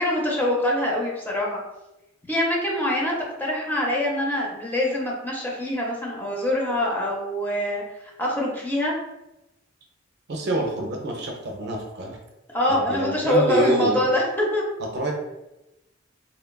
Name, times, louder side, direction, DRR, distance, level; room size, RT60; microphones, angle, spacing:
voice 1, 0.0-1.6 2.3-3.1 3.4-8.9 12.5-14.6, left 1 dB, 10° left, -3 dB, 0.5 m, -24 dB
voice 2, 10.3-12.2 12.7-14.0 14.9-15.1, right 1 dB, 55° right, 1 dB, 0.5 m, -26 dB
3.0 x 2.2 x 2.2 m, 0.94 s
head